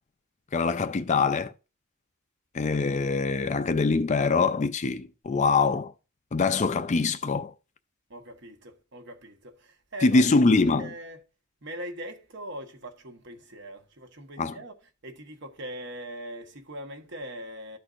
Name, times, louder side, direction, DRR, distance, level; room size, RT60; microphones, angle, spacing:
voice 1, 0.5-1.5 2.5-5.9 6.3-7.5 10.0-10.9 14.4-14.6, left 4 dB, 35° left, 0.4 m, -24 dB
voice 2, 8.1-10.4 10.8-11.2 11.6-14.7 15.0-17.8, right 1 dB, 55° right, 1.2 m, -41 dB
13.0 x 4.4 x 2.5 m
head